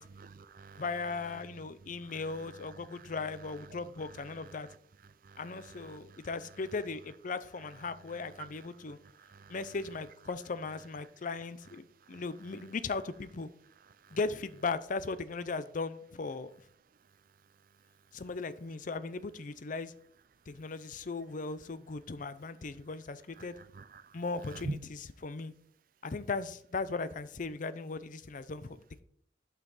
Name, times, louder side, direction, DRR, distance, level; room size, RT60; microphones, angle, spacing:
voice 1, 0.0-4.8 5.0-6.6 8.0-9.8 12.0-12.3 13.9-14.2 17.0-17.1 17.8-17.9 23.4-24.8, right 3 dB, 55° right, 0.5 m, -49 dB
voice 2, 0.8-4.7 5.4-9.0 9.5-13.5 14.1-16.5 18.1-19.9 20.5-23.5 24.1-24.8 25.2-25.5 26.0-29.0, left 4 dB, 50° left, 0.6 m, -37 dB
11.5 x 5.7 x 4.0 m
head